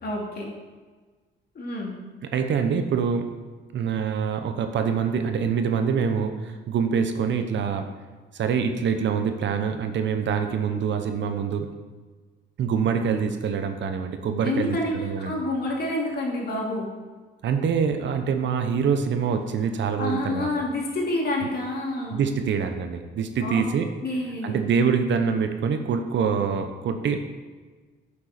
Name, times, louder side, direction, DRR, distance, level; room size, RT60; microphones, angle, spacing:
voice 1, 0.0-0.5 1.5-1.9 14.4-16.9 20.0-22.2 23.4-23.6 24.0-24.6, left 1 dB, 55° left, -2 dB, 2.7 m, -28 dB
voice 2, 2.3-3.4 3.7-7.9 8.3-11.7 12.6-15.3 17.4-20.5 22.1-23.9 24.4-27.2, right 6 dB, 65° right, 7 dB, 1.0 m, -25 dB
9.7 x 7.3 x 4.3 m, 1.4 s
cardioid pair, 90°, 20 cm